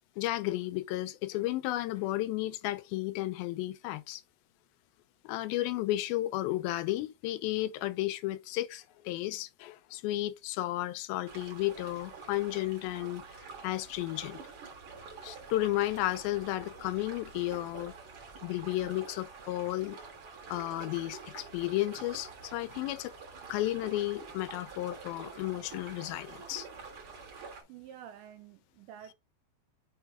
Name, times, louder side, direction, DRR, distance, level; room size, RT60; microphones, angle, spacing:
voice 1, 0.2-4.2 5.2-13.2 13.6-14.4 15.2-17.9 18.4-20.0 20.5-23.1 23.5-26.7, left 16 dB, 85° left, 2.4 m, -33 dB
sound 1, 11.3-27.6, right 4 dB, 50° right, 1.6 m, -47 dB
voice 2, 27.7-29.1, right 10 dB, 85° right, 2.0 m, -49 dB
6.1 x 4.6 x 3.5 m
omnidirectional pair, 4.3 m